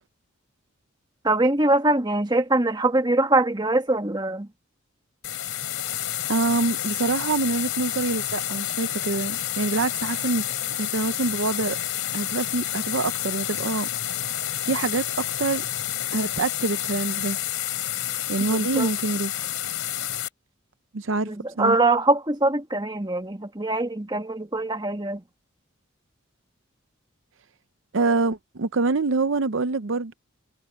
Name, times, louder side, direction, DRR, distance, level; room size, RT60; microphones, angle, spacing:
voice 1, 1.2-4.5 18.4-18.9 21.3-25.2, right 2 dB, 20° right, 1.7 m, -23 dB
sound 1, 5.2-20.3, left 12 dB, 90° left, 3.3 m, -29 dB
voice 2, 6.3-11.8 12.1-13.9 14.6-15.6 16.1-17.4 18.3-19.5 20.9-21.3 21.6-21.8 27.9-30.1, right 3 dB, 65° right, 0.7 m, -26 dB
head